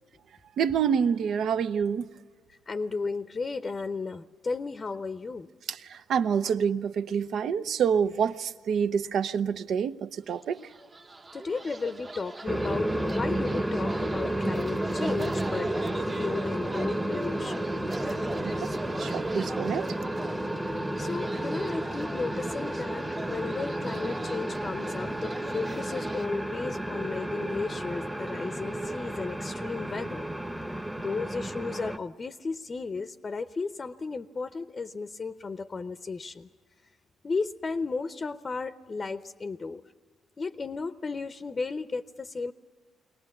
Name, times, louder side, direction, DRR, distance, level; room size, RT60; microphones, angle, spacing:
voice 1, 0.6-2.1 5.7-10.6 18.4-18.7 19.0-19.9, right 7 dB, 70° right, 12 dB, 0.7 m, -27 dB
voice 2, 2.5-5.5 11.3-17.7 20.6-30.3 30.7-36.5 37.2-39.8 40.4-42.5, left 4 dB, 35° left, 11 dB, 0.7 m, -34 dB
sound 1, 10.4-26.3, right 3 dB, 30° right, 0.9 m, -41 dB
sound 2, 12.5-32.0, right 1 dB, 5° right, 0.9 m, -32 dB
22.5 x 18.5 x 8.4 m, 1.5 s
cardioid pair, 90°, 0 cm